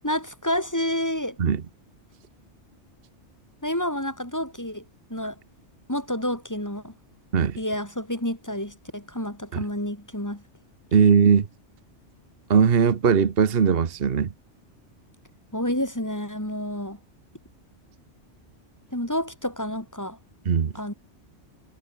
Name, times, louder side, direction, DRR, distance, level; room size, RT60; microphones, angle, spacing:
voice 1, 0.0-1.4 3.6-4.8 5.1-5.4 5.9-6.9 7.6-10.4 15.5-17.0 18.9-20.2 20.7-20.9, left 1 dB, 15° left, 4.2 m, -29 dB
voice 2, 10.9-11.5 12.5-14.3 20.4-20.7, right 6 dB, 55° right, 1.3 m, -19 dB
omnidirectional pair, 1.2 m